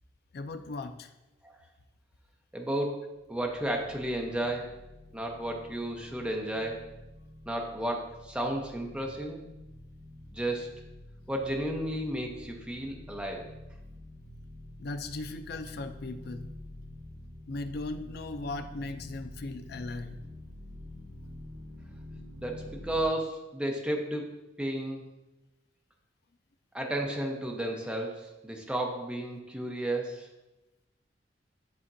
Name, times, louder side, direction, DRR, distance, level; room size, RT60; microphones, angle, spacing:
voice 1, 0.3-1.1 14.8-16.5 17.5-20.2, left 2 dB, 60° left, 9 dB, 0.4 m, -38 dB
voice 2, 2.5-3.0 3.3-4.7 5.1-6.8 7.5-9.5 10.3-10.7 11.3-13.5 22.4-24.3 24.6-25.0 26.7-30.3, right 1 dB, 5° right, 0 dB, 0.8 m, -33 dB
sound 1, 3.2-23.0, left 1 dB, 90° right, 1.1 m, -48 dB
10.5 x 3.6 x 2.7 m, 1.0 s
head